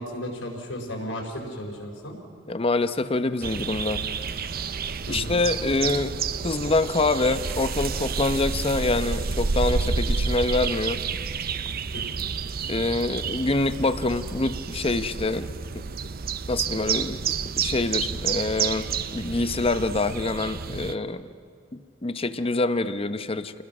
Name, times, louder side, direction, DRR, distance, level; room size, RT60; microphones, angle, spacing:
voice 1, 0.0-2.2 5.1-5.4 11.9-12.1, equal, 80° left, 1 dB, 5.2 m, -34 dB
voice 2, 2.5-4.0 5.1-11.0 12.7-15.5 16.5-17.2 17.6-21.3 21.7-23.5, left 2 dB, 30° left, 11 dB, 0.8 m, -25 dB
sound 1, 3.4-20.9, right 5 dB, 50° right, 0.7 m, -30 dB
29.0 x 20.5 x 6.1 m, 2.4 s
head